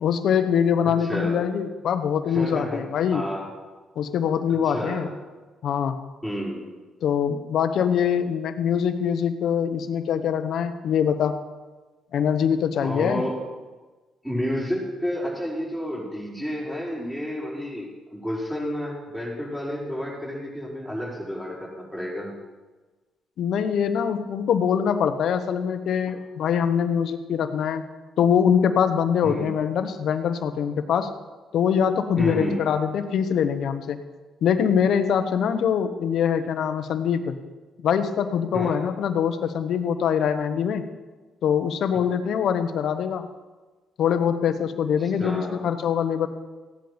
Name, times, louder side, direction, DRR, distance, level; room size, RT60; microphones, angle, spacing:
voice 1, 0.0-3.3 4.0-5.1 5.6-6.0 7.0-11.4 12.1-13.3 23.4-27.9 28.2-31.1 31.5-34.0 34.4-37.4 37.8-40.9 41.4-43.3 44.0-46.3, left 8 dB, 70° left, 9 dB, 1.1 m, -23 dB
voice 2, 0.8-1.4 2.3-2.8 3.1-3.5 4.7-5.1 6.2-6.7 12.8-13.4 14.2-22.4 29.2-29.5 32.2-32.7 38.5-38.7 45.0-45.6, equal, 10° right, -5 dB, 5.2 m, -30 dB
16.0 x 10.5 x 5.3 m, 1.3 s
cardioid pair, 90°, 0 cm